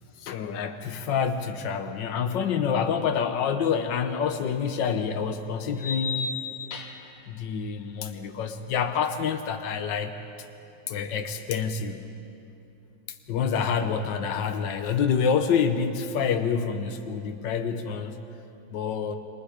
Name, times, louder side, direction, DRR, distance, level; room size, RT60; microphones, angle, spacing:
voice 1, 0.2-6.3 7.3-10.1 10.9-12.0 13.1-18.2 18.7-19.2, left 6 dB, 90° left, 7 dB, 1.6 m, -27 dB
sound 1, 4.1-4.2 5.8-7.2, left 4 dB, 55° left, 1.5 m, -33 dB
28.0 x 23.0 x 5.1 m, 2.8 s
omnidirectional pair, 1.9 m